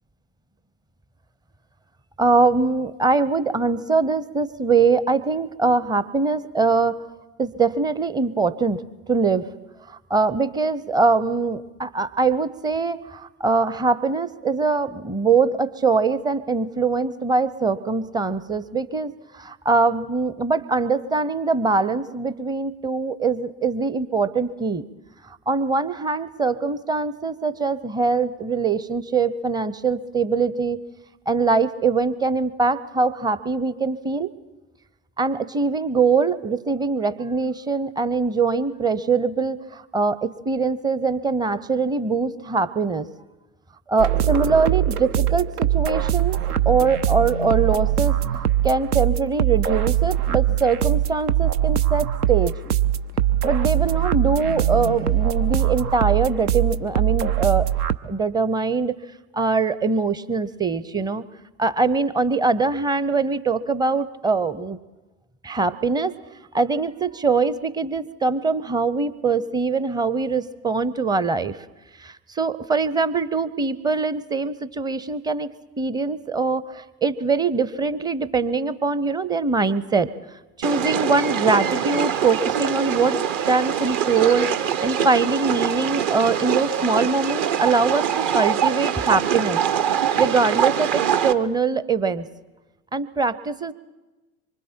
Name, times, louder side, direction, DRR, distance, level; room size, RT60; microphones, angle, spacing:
voice 1, 2.2-7.0 7.4-8.8 9.1-9.5 9.9-24.8 25.5-30.8 31.3-34.3 35.2-43.1 43.9-48.2 48.6-52.5 53.4-57.7 58.0-58.9 59.3-61.2 61.6-64.8 65.4-66.1 66.5-71.6 72.0-75.5 75.8-80.1 80.6-83.2 83.5-89.6 89.9-92.3 92.9-93.7, right 4 dB, 10° right, 15 dB, 0.6 m, -22 dB
sound 1, 44.0-58.0, right 11 dB, 80° right, 0.8 m, -22 dB
sound 2, 80.6-91.3, right 9 dB, 45° right, 1.1 m, -23 dB
24.5 x 24.5 x 4.4 m, 1.1 s
figure-of-eight pair, 80°, 45 cm